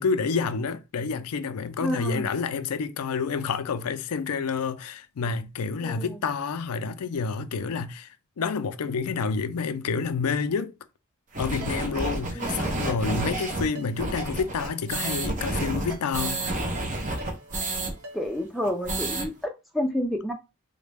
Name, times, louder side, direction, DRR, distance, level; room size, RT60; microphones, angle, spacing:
voice 1, 0.0-10.7 11.4-16.4, left 5 dB, 85° left, 0.4 m, -29 dB
voice 2, 1.8-2.3 5.8-6.2 12.3-12.8 13.2-13.5 18.1-20.3, equal, ahead, 0.4 m, -30 dB
sound 1, 11.3-17.9 18.2-18.3 18.6-19.3, right 2 dB, 35° right, 0.7 m, -30 dB
Ringtone, 11.6-18.5, right 2 dB, 90° right, 1.0 m, -46 dB
3.9 x 2.1 x 3.3 m
head